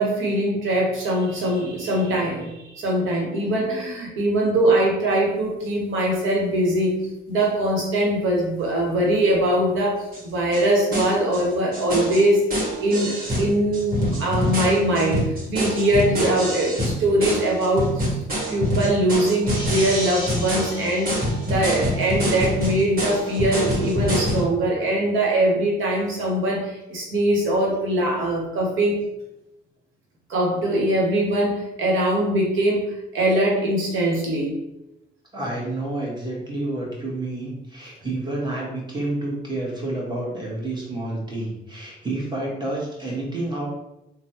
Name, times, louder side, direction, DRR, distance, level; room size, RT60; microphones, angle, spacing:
voice 1, 0.0-7.0 7.3-18.2 18.5-21.2 21.4-29.0 30.3-32.8 33.1-34.6, right 1 dB, 75° right, -2 dB, 1.0 m, -22 dB
sound 1, 10.1-10.2 10.5-10.6 10.9-11.4 11.7-24.4, equal, 45° right, 1.4 m, -26 dB
voice 2, 35.3-43.6, right 2 dB, 20° right, -4 dB, 1.3 m, -29 dB
3.2 x 2.1 x 2.8 m, 0.90 s
supercardioid pair, 60°, 20 cm